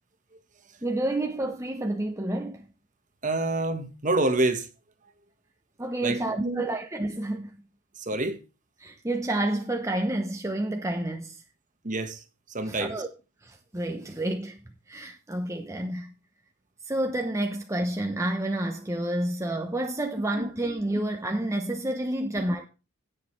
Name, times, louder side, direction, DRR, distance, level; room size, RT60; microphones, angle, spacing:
voice 1, 0.8-2.7 5.8-7.6 8.8-11.4 12.7-13.1 13.4-14.6 14.9-16.1 16.8-22.7, right 1 dB, 15° right, 0.8 m, -29 dB
voice 2, 3.2-4.7 6.0-6.6 7.9-8.4 11.8-12.2 12.5-13.0 20.3-20.4, right 2 dB, 35° right, 1.4 m, -27 dB
17.0 x 6.5 x 3.2 m
head